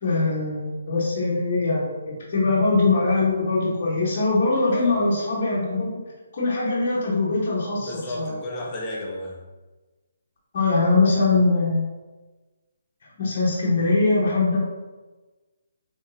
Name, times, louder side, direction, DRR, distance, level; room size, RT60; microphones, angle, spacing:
voice 1, 0.0-6.0 6.3-8.4 10.5-11.9 13.2-14.6, left 3 dB, 40° left, -7 dB, 1.0 m, -22 dB
voice 2, 4.7-5.1 7.8-9.5, left 1 dB, 20° left, -3 dB, 0.6 m, -33 dB
3.7 x 3.5 x 2.6 m, 1.2 s
hypercardioid pair, 165°, 0 cm